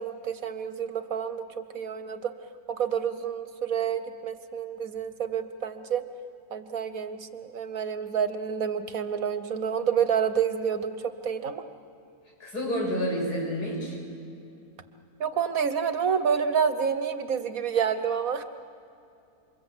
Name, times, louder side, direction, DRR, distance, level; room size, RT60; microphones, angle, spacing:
voice 1, 0.0-2.3 2.7-6.0 6.5-11.6 15.2-18.4, right 7 dB, 65° right, 10 dB, 1.4 m, -28 dB
voice 2, 12.4-14.0, equal, 85° left, -1 dB, 7.5 m, -29 dB
27.5 x 24.5 x 8.0 m, 2.7 s
omnidirectional pair, 1.6 m